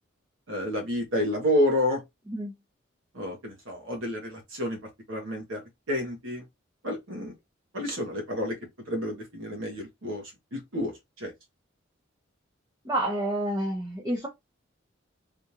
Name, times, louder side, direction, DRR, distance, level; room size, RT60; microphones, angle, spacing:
voice 1, 0.5-2.0 3.1-4.8 5.1-5.6 5.9-6.4 6.8-7.3 7.7-8.6 8.9-10.2 10.5-11.3, left 1 dB, 75° right, 1.2 m, -29 dB
voice 2, 12.8-14.3, right 1 dB, 20° right, 0.7 m, -29 dB
3.6 x 2.5 x 2.9 m
head